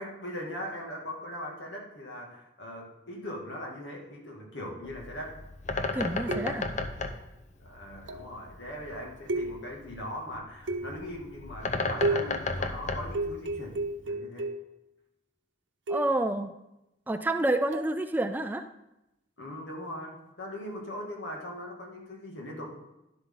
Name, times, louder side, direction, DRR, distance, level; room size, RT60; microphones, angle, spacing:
voice 1, 0.0-5.3 7.6-13.8 14.0-14.5 19.4-22.8, left 1 dB, 80° left, -1 dB, 2.3 m, -40 dB
Bird, 4.8-14.0, left 3 dB, 40° left, 0.8 m, -35 dB
voice 2, 5.9-6.7 15.9-16.5 17.1-18.6, right 1 dB, 10° right, 8 dB, 0.4 m, -28 dB
sound 1, 6.3-6.8 8.1-8.4 9.3-9.9 10.7-11.2 12.0-12.5 13.1-14.8 15.9-16.3 17.7-18.0, right 2 dB, 80° right, 0.9 m, -33 dB
11.5 x 7.7 x 3.9 m, 0.90 s
head